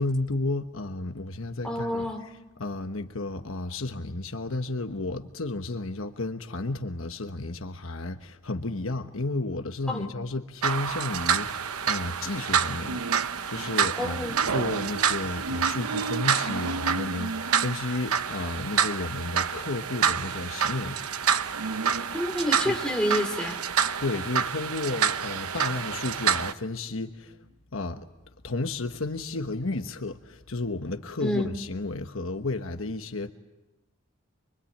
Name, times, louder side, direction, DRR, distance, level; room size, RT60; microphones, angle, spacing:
voice 1, 0.0-2.3 2.6-14.2 14.5-21.0 22.6-22.8 24.0-28.1 28.4-33.3, left 2 dB, 65° left, 1.2 m, -32 dB
voice 2, 1.6-2.2 9.9-10.1 14.0-14.4 22.1-23.6 31.2-31.5, left 1 dB, 5° left, 2.6 m, -28 dB
sound 1, 10.6-26.5, right 7 dB, 85° right, 0.9 m, -28 dB
25.0 x 24.0 x 8.6 m
head